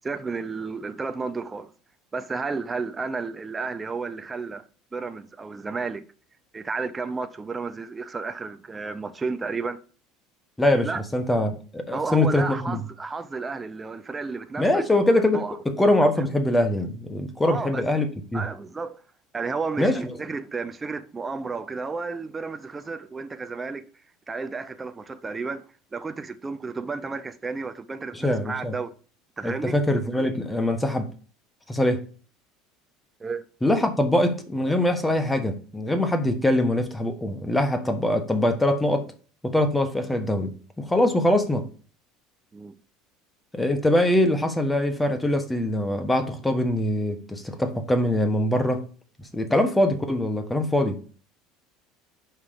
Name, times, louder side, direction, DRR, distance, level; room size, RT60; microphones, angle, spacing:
voice 1, 0.0-1.7 2.1-4.7 4.9-6.1 6.5-9.8 10.8-11.0 11.9-14.8 15.3-15.6 16.2-16.3 17.4-17.9 18.3-19.0 19.3-23.9 24.3-25.6 25.9-28.9 29.4-29.8 33.2-33.4 42.5-42.8, right 4 dB, 15° right, 0.6 m, -32 dB
voice 2, 10.6-12.8 14.6-18.4 19.8-20.0 28.1-28.7 29.4-31.1 31.7-32.0 33.6-39.1 39.4-40.5 40.8-41.7 43.5-48.9 49.3-51.2, left 1 dB, 5° left, 1.3 m, -23 dB
5.8 x 5.7 x 5.1 m
cardioid pair, 135°, 0 cm